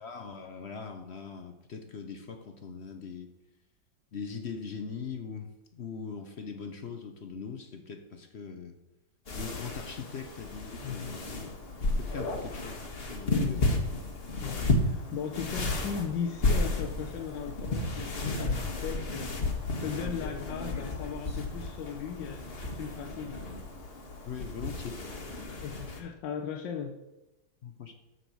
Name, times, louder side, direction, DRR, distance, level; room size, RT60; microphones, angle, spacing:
voice 1, 0.0-3.3 4.1-8.8 9.3-11.5 12.0-13.7 24.2-25.2 27.6-27.9, left 6 dB, 55° left, 7 dB, 0.7 m, -41 dB
sound 1, 9.3-26.0, left 2 dB, 35° left, 1.2 m, -33 dB
voice 2, 10.8-11.2 13.3-13.9 14.4-22.4 22.7-23.4 25.5-27.0, left 7 dB, 75° left, 4 dB, 1.5 m, -37 dB
8.1 x 6.8 x 6.1 m, 0.99 s
omnidirectional pair, 2.0 m